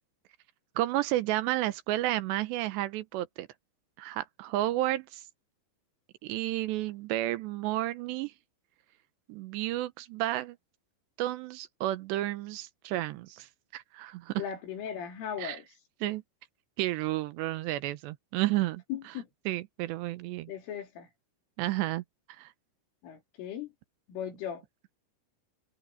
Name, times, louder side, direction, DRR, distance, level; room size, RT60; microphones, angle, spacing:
voice 1, 0.8-3.5 4.0-5.2 6.2-8.3 9.3-10.6 11.2-13.5 13.7-14.4 15.4-15.6 16.0-16.2 16.8-18.8 19.5-20.5 21.6-22.0 22.4-22.5, right 15 dB, 75° right, 2.8 m, -31 dB
voice 2, 14.4-15.6 18.9-19.3 20.5-21.1 23.0-23.7 24.1-24.6, left 9 dB, 90° left, 6.2 m, -37 dB
omnidirectional pair, 5.5 m